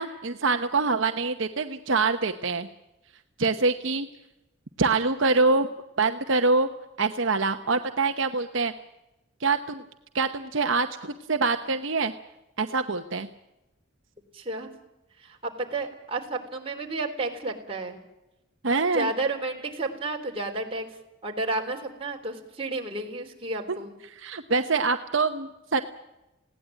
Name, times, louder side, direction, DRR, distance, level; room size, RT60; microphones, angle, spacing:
voice 1, 0.0-2.7 3.4-4.1 4.8-5.7 6.0-6.7 7.0-8.7 9.4-9.8 10.1-12.1 12.6-13.3 18.6-19.1 24.2-25.8, right 3 dB, 65° right, 6 dB, 1.0 m, -25 dB
voice 2, 14.3-14.7 15.2-18.0 18.9-20.9 21.2-23.9, right 2 dB, 25° right, 1 dB, 3.7 m, -31 dB
20.0 x 17.0 x 9.2 m, 0.94 s
head